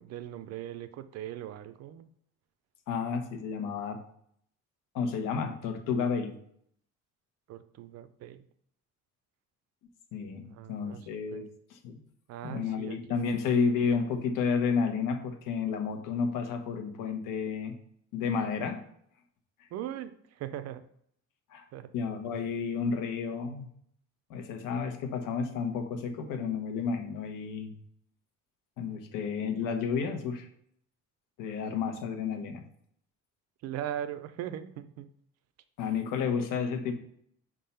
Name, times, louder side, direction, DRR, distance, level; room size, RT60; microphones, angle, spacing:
voice 1, 0.0-2.1 7.5-8.4 10.5-11.4 12.3-13.0 13.5-13.6 19.7-20.8 21.7-21.9 33.6-35.1, right 11 dB, 55° right, 12 dB, 0.5 m, -40 dB
voice 2, 2.9-4.0 4.9-6.4 10.1-12.0 12.4-17.7 18.1-18.8 21.5-21.7 21.9-23.7 24.3-27.7 28.8-30.5 31.4-32.6 35.8-36.9, left 5 dB, 90° left, 6 dB, 1.2 m, -31 dB
5.6 x 3.7 x 5.6 m, 0.68 s
cardioid pair, 180°, 31 cm